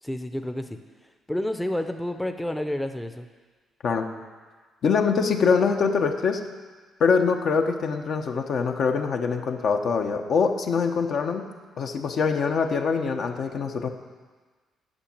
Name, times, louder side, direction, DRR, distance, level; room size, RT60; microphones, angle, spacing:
voice 1, 0.0-3.3, left 1 dB, 5° left, 7 dB, 0.6 m, -30 dB
voice 2, 4.8-6.4 7.0-11.5 11.8-13.9, left 5 dB, 60° left, 4 dB, 0.9 m, -24 dB
8.9 x 6.5 x 8.6 m, 1.4 s
cardioid pair, 90°, 0 cm